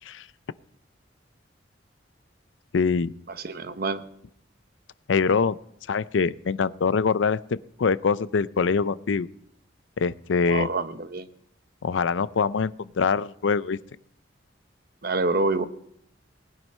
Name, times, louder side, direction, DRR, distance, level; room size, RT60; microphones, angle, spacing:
voice 1, 2.7-3.1 5.1-5.6 5.9-9.3 10.0-10.7 11.8-13.8, left 5 dB, 90° left, 17 dB, 0.5 m, -24 dB
voice 2, 3.4-4.0 10.5-11.3 15.0-15.6, right 3 dB, 55° right, 10 dB, 0.9 m, -26 dB
19.0 x 9.2 x 5.5 m, 0.74 s
head